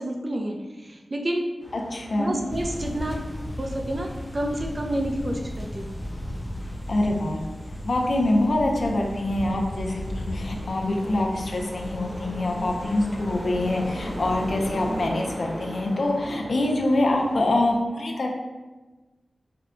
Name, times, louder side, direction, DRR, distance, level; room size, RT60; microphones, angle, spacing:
voice 1, 0.0-1.4 2.2-3.2 3.6-5.9, right 1 dB, 35° right, 2 dB, 0.5 m, -29 dB
sound 1, 1.6-17.8, right 1 dB, 55° right, 1.0 m, -39 dB
voice 2, 1.7-2.4 6.9-7.4 7.8-18.3, left 1 dB, 65° left, 0 dB, 0.6 m, -25 dB
sound 2, 2.5-15.1, left 1 dB, 25° left, 0.3 m, -36 dB
4.7 x 2.2 x 3.7 m, 1.2 s
wide cardioid pair, 95°, 0 cm